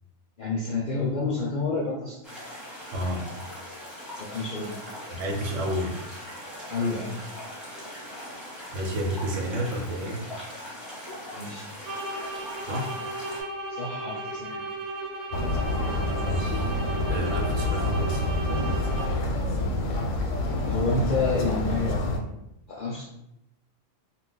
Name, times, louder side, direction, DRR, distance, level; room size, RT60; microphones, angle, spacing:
voice 1, 0.4-2.2 4.2-4.8 6.7-7.2 11.3-11.7 13.7-14.6 20.7-22.0 22.7-23.1, left 3 dB, 55° left, -5 dB, 0.6 m, -29 dB
sound 1, 2.2-13.4, equal, ahead, 0.8 m, -40 dB
voice 2, 2.9-3.3 5.1-6.0 8.7-10.3 12.6-13.0 16.0-16.7 17.1-18.4, equal, 80° right, 0 dB, 1.1 m, -30 dB
sound 2, 11.8-19.3, right 1 dB, 40° right, 0.5 m, -35 dB
sound 3, 15.3-22.2, left 1 dB, 90° left, 1.0 m, -27 dB
2.3 x 2.3 x 3.8 m, 0.83 s
omnidirectional pair, 1.3 m